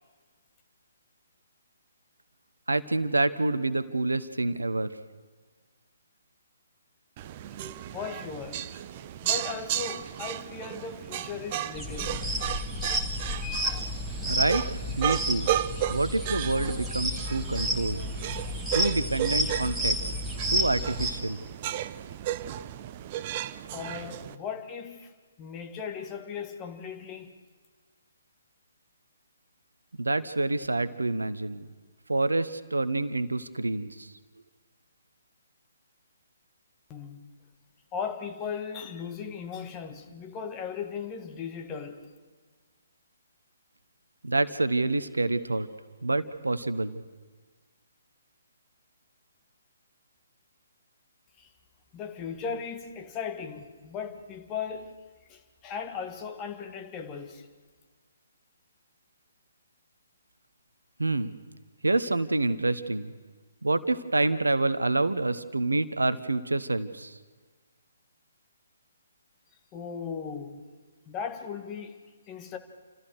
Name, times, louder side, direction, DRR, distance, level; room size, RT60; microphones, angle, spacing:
voice 1, 2.7-5.0 14.3-14.7 15.0-15.6 15.9-18.0 18.7-20.0 20.5-21.5 30.0-31.7 32.1-34.1 44.2-45.7 46.0-47.0 61.0-61.3 61.8-63.1 63.6-67.2, right 2 dB, 75° right, 1.0 m, -27 dB
sound 1, 7.2-24.3, right 12 dB, 30° right, 0.6 m, -34 dB
voice 2, 7.9-8.7 9.2-12.2 13.4-13.8 23.7-25.1 25.4-27.3 36.9-37.2 37.9-42.1 51.4-51.5 51.9-54.9 55.3-57.5 69.7-70.6 71.1-72.0 72.3-72.6, left 6 dB, 20° left, 1.7 m, -37 dB
sound 2, 11.7-21.1, equal, ahead, 2.3 m, -31 dB
29.0 x 14.0 x 6.5 m
figure-of-eight pair, 135°, 0 cm